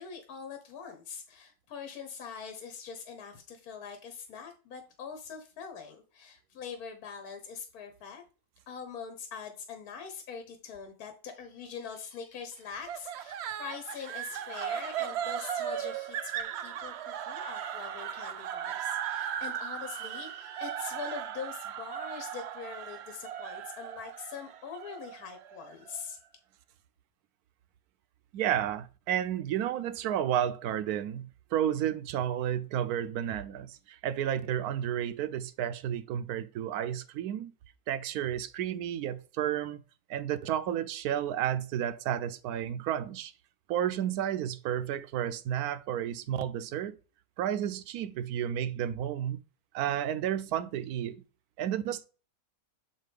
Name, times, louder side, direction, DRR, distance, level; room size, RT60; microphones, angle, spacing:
voice 1, 0.0-8.2 8.7-26.2, left 6 dB, 85° left, 1.4 m, -43 dB
sound 1, 12.9-26.0, right 9 dB, 70° right, 0.6 m, -37 dB
voice 2, 28.3-37.5 37.9-39.8 40.1-43.3 43.7-47.0 47.4-49.4 49.7-51.2 51.6-52.1, right 10 dB, 85° right, 1.1 m, -32 dB
6.5 x 4.3 x 3.4 m
omnidirectional pair, 1.6 m